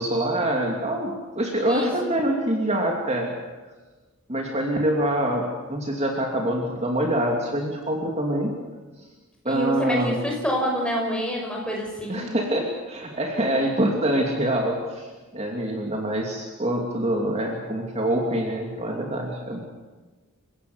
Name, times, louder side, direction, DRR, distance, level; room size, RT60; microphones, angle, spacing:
voice 1, 0.0-3.3 4.3-8.5 9.4-10.1 12.1-15.1 15.3-19.6, right 1 dB, 30° right, 1 dB, 2.7 m, -25 dB
voice 2, 1.7-2.1 9.4-12.2, equal, 5° left, 0 dB, 6.0 m, -27 dB
29.0 x 16.5 x 8.1 m, 1.3 s
head